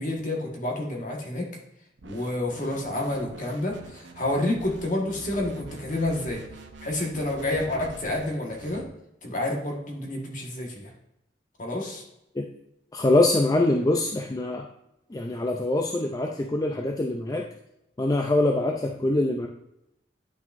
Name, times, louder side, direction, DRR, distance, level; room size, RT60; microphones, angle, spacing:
voice 1, 0.0-1.5 2.0-6.4 6.8-8.8 9.2-10.9 11.6-12.0, left 1 dB, 45° left, 0 dB, 1.5 m, -29 dB
sound 1, 2.0-8.9, right 2 dB, 90° right, 0.8 m, -45 dB
voice 2, 12.9-14.7 15.1-17.5 18.0-19.5, left 2 dB, 20° left, 2 dB, 0.4 m, -24 dB
9.6 x 5.9 x 2.5 m, 0.83 s
head